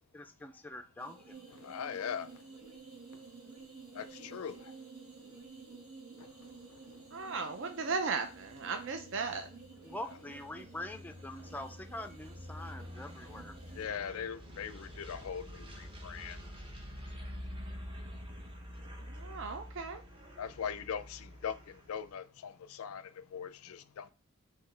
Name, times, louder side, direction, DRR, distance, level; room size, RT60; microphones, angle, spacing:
voice 1, 0.1-1.5 9.8-13.5, left 1 dB, 10° left, 0.4 m, -44 dB
sound 1, 1.0-13.8, right 4 dB, 85° right, 1.3 m, -53 dB
voice 2, 1.5-2.7 3.0-3.5 3.9-5.7 6.1-6.8 13.7-19.4 20.3-24.1, left 7 dB, 75° left, 0.4 m, -43 dB
sound 2, 6.5-22.1, equal, 25° right, 0.8 m, -48 dB
voice 3, 7.1-9.5 19.0-20.0, right 4 dB, 60° right, 0.5 m, -36 dB
5.6 x 2.8 x 3.2 m
head